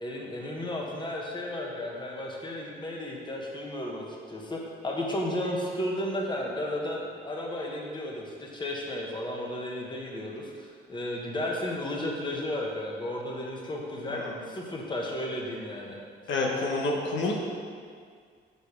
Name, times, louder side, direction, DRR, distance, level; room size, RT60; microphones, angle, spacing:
voice 1, 0.0-4.6 4.8-16.0, left 1 dB, 25° left, -1 dB, 1.3 m, -33 dB
voice 2, 16.3-17.3, left 2 dB, 70° left, 0 dB, 1.0 m, -28 dB
6.3 x 5.3 x 5.1 m, 2.1 s
cardioid pair, 90°, 20 cm